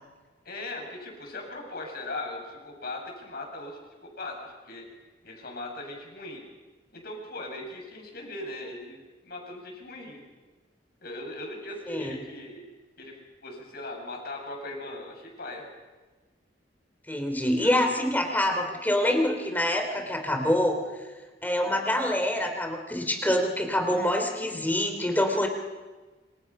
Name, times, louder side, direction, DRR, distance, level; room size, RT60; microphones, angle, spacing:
voice 1, 0.5-4.8 5.2-6.4 6.9-9.0 9.2-10.2 11.0-12.6 13.0-13.2 13.4-15.6 17.6-17.8, left 2 dB, 60° left, 1 dB, 7.1 m, -39 dB
voice 2, 17.1-21.0 21.4-25.5, left 1 dB, 10° left, 4 dB, 3.6 m, -26 dB
27.0 x 26.5 x 5.8 m, 1.3 s
head